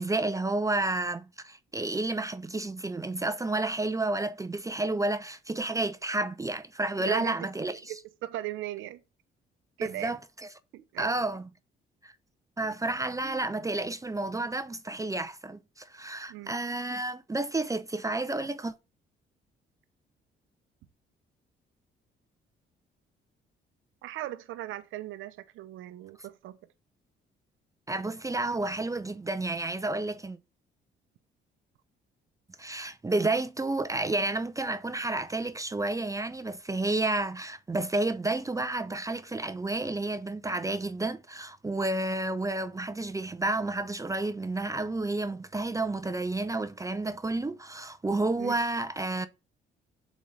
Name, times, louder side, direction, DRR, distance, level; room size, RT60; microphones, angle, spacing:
voice 1, 0.0-7.9 9.8-10.2 11.0-11.5 12.0-12.1 12.6-18.7 27.9-30.4 32.6-49.3, right 2 dB, 15° right, 0.5 m, -31 dB
voice 2, 7.0-7.3 7.7-9.0 9.8-10.1 10.7-11.2 12.6-12.8 16.3-16.5 24.0-26.6 48.3-48.6, right 14 dB, 85° right, 0.6 m, -38 dB
7.5 x 4.1 x 3.2 m
cardioid pair, 90°, 20 cm